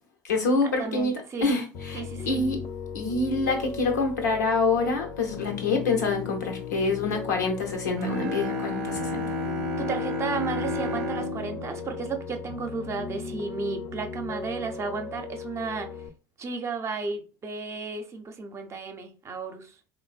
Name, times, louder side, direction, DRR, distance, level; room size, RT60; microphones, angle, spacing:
voice 1, 0.2-2.6 2.9-9.3, left 3 dB, 85° left, 0.7 m, -26 dB
voice 2, 0.8-1.5 1.9-2.4 9.8-15.9 16.4-19.7, right 4 dB, 30° right, 0.6 m, -33 dB
Piano, 1.7-16.1, left 5 dB, 40° left, 0.4 m, -37 dB
Bowed string instrument, 8.0-13.1, left 2 dB, 75° right, 0.5 m, -32 dB
3.1 x 2.1 x 2.4 m
hypercardioid pair, 70°, 9 cm